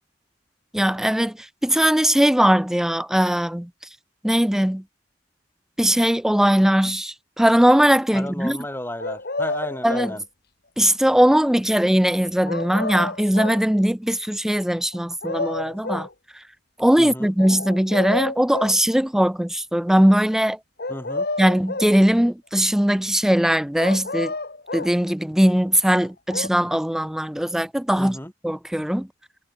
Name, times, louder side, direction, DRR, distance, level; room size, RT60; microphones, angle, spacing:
voice 1, 0.7-3.7 4.2-4.8 5.8-8.6 9.8-10.2 10.8-16.1 16.8-20.6 21.4-24.3 24.7-28.2 28.4-29.1, equal, 5° right, 0.3 m, -20 dB
voice 2, 8.1-10.2 17.0-17.3 20.9-21.3 28.0-28.3, left 1 dB, 10° left, 4.8 m, -33 dB
sound 1, 9.0-10.2 12.5-13.7 14.9-16.1 17.4-18.8 20.8-22.0 23.8-25.0 26.0-26.5, left 2 dB, 60° left, 2.7 m, -30 dB
head